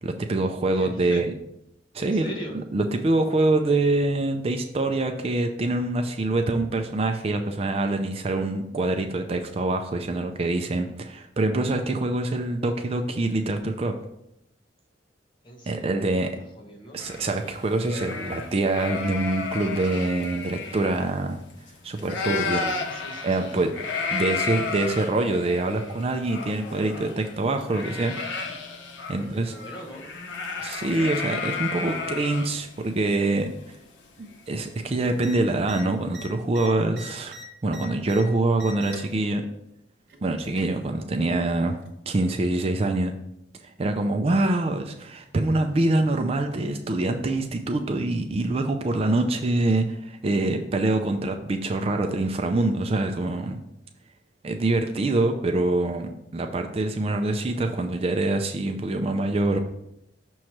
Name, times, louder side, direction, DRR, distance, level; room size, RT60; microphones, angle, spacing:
voice 1, 0.0-1.3 1.9-2.3 2.7-14.0 15.7-16.4 16.9-21.4 21.8-22.6 23.2-23.7 24.1-28.1 29.1-29.5 30.6-33.5 34.2-37.4 37.6-39.4 40.2-41.8 42.1-43.1 43.6-53.6 54.4-59.6, right 2 dB, 35° right, 5 dB, 0.4 m, -25 dB
voice 2, 0.7-1.2 2.0-2.6 15.4-16.3 16.5-17.0 22.1-23.6 29.2-30.1, equal, 25° left, -1 dB, 1.2 m, -40 dB
sound 1, 17.0-21.7 22.0-34.9, left 5 dB, 85° left, 0.9 m, -33 dB
sound 2, 35.2-35.3 35.6-35.8 36.1-38.2 38.5-39.1 40.1-40.8 41.8-41.9, equal, 60° right, 1.5 m, -42 dB
6.3 x 3.1 x 5.8 m, 0.81 s
head